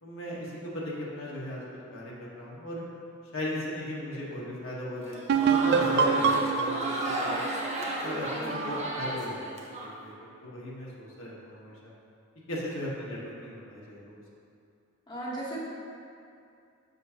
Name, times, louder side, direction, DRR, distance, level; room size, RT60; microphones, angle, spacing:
voice 1, 0.0-2.8 3.3-7.4 8.0-10.1 10.4-11.9 12.5-14.2, left 1 dB, 70° left, -6 dB, 1.2 m, -37 dB
Crowd, 5.0-9.9, right 1 dB, 35° right, 0.7 m, -33 dB
sound 1, 5.3-8.9, right 5 dB, 55° right, 0.3 m, -26 dB
voice 2, 8.4-8.7 15.1-15.6, right 1 dB, 20° left, -7 dB, 1.0 m, -37 dB
6.4 x 6.0 x 2.8 m, 2.5 s
head